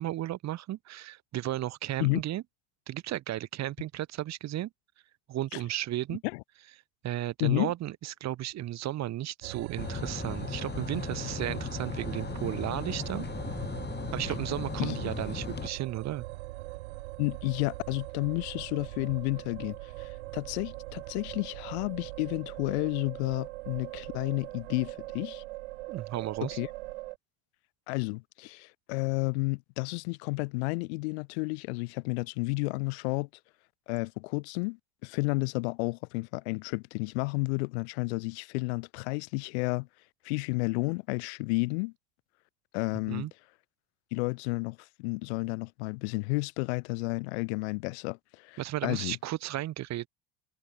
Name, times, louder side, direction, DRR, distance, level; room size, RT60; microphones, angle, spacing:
voice 1, 0.0-2.4 2.9-4.7 5.3-6.2 7.0-13.2 14.1-16.2 25.9-26.6 43.1-43.3 48.6-50.1, right 14 dB, 55° right, 2.9 m, -34 dB
voice 2, 6.1-6.4 7.4-7.7 14.8-15.0 17.2-25.4 26.4-26.7 27.9-33.3 33.9-39.9 40.2-41.9 42.7-43.3 44.1-49.2, left 27 dB, 80° left, 2.9 m, -31 dB
sound 1, 9.4-27.2, right 20 dB, 85° right, 2.7 m, -41 dB
sound 2, 9.8-15.7, left 6 dB, 30° left, 5.8 m, -37 dB
supercardioid pair, 85°, 33 cm